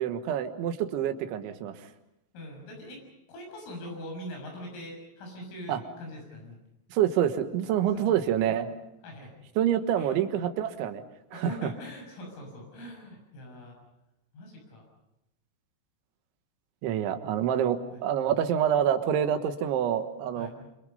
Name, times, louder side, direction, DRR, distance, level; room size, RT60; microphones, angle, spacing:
voice 1, 0.0-1.9 5.7-5.8 6.9-8.7 9.6-11.0 11.3-11.7 16.8-20.5, right 9 dB, 70° right, 8 dB, 3.6 m, -27 dB
voice 2, 2.3-3.0 3.3-6.6 7.9-8.0 9.0-9.3 10.0-10.2 11.3-13.8 14.3-14.9 17.9-18.0 20.4-20.5, equal, 80° left, 1 dB, 9.3 m, -42 dB
27.0 x 26.0 x 5.5 m, 0.89 s
omnidirectional pair, 5.8 m